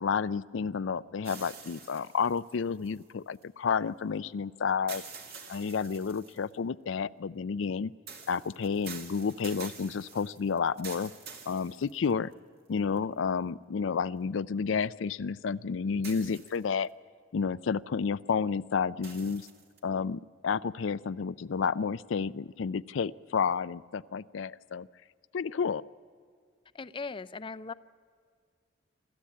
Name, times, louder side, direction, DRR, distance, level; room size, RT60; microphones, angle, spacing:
voice 1, 0.0-5.0 5.5-7.9 8.3-11.1 11.5-12.3 12.7-16.9 17.3-19.5 19.8-24.9 25.3-25.8, left 6 dB, 85° left, 15 dB, 0.4 m, -31 dB
sound 1, 1.2-3.4 4.9-6.5 8.1-12.3 13.0-13.1 16.0-16.9 19.0-19.8, right 5 dB, 55° right, 2.4 m, -47 dB
voice 2, 26.7-27.7, left 4 dB, 25° left, 14 dB, 0.5 m, -38 dB
26.5 x 13.5 x 8.5 m, 2.1 s
head